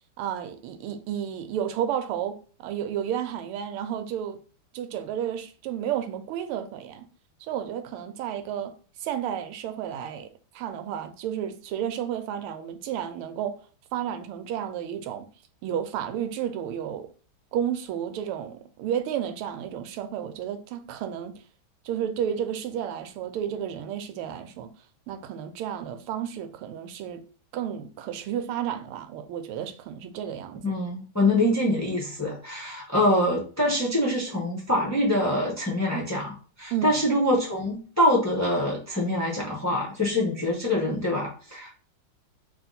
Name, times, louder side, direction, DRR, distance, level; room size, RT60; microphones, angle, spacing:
voice 1, 0.2-4.4 4.7-7.1 7.4-13.6 13.9-15.2 15.6-17.1 17.5-21.4 21.8-24.7 25.1-27.2 27.5-30.6 36.7-36.9, right 9 dB, 90° right, 1.5 m, -32 dB
voice 2, 30.6-41.7, left 1 dB, 25° left, 0.3 m, -25 dB
3.5 x 2.8 x 3.9 m
omnidirectional pair, 2.4 m